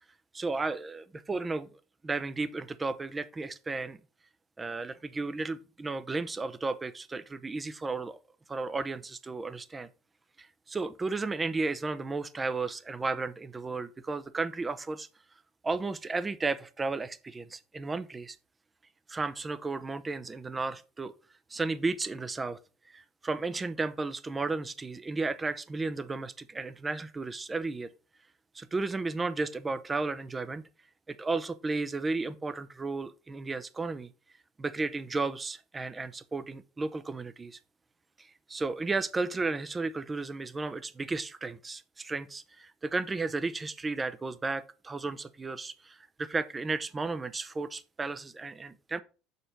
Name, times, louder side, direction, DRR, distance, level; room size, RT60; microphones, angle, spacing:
voice 1, 0.3-1.7 2.0-4.0 4.6-8.2 8.5-9.9 10.4-15.1 15.6-18.4 19.1-21.1 21.5-22.6 22.9-27.9 28.5-30.6 31.1-34.1 34.6-37.6 38.5-49.0, right 3 dB, 20° right, 0.7 m, -33 dB
6.7 x 4.5 x 5.1 m
hypercardioid pair, 80°, 0 cm